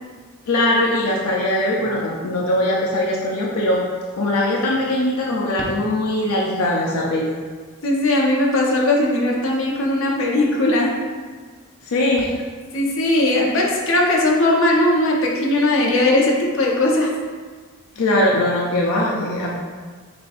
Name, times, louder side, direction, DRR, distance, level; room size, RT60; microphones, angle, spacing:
voice 1, 0.5-3.8 4.1-7.3 11.8-12.3 18.0-19.6, left 1 dB, 90° left, -3 dB, 0.5 m, -21 dB
voice 2, 7.8-10.9 12.7-17.1, left 1 dB, 60° left, -2 dB, 0.8 m, -18 dB
6.7 x 2.6 x 2.5 m, 1.5 s
head